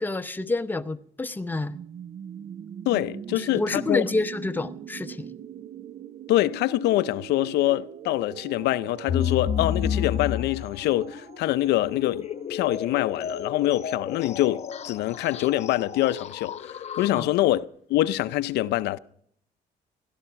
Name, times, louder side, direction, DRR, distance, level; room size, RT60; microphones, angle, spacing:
voice 1, 0.0-1.8 3.3-5.3 17.1-17.3, left 2 dB, 10° left, 0.8 m, -28 dB
sound 1, 1.5-13.2, right 8 dB, 45° right, 0.6 m, -42 dB
voice 2, 2.9-4.0 6.3-19.0, left 15 dB, 80° left, 0.6 m, -25 dB
sound 2, 9.1-17.6, left 9 dB, 40° left, 1.0 m, -32 dB
16.5 x 12.0 x 5.8 m
cardioid pair, 110°, 17 cm